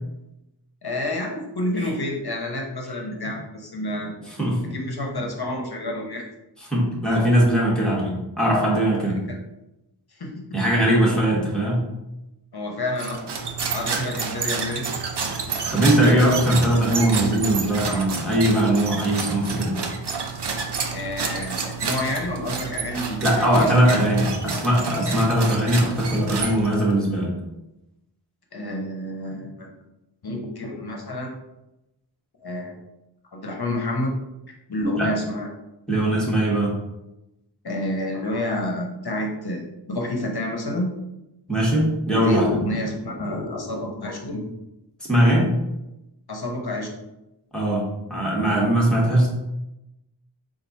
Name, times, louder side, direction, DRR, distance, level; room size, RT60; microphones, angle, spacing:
voice 1, 0.8-4.2 4.7-6.2 10.2-10.4 12.5-13.2 13.7-14.8 20.9-24.0 28.5-29.7 30.2-31.3 32.4-32.8 33.3-34.1 34.7-35.5 37.6-39.6 39.9-40.9 42.1-44.4 46.3-46.9, left 1 dB, 55° left, 1 dB, 0.9 m, -29 dB
voice 2, 6.7-9.2 10.5-11.9 15.7-19.7 23.2-27.3 35.0-35.1 35.9-36.7 41.5-42.5 45.1-45.5 47.5-47.8 48.1-49.3, right 1 dB, ahead, -5 dB, 1.5 m, -20 dB
sound 1, 13.0-26.9, right 4 dB, 65° right, 0.6 m, -29 dB
4.4 x 2.5 x 4.1 m, 0.93 s
wide cardioid pair, 50°, 45 cm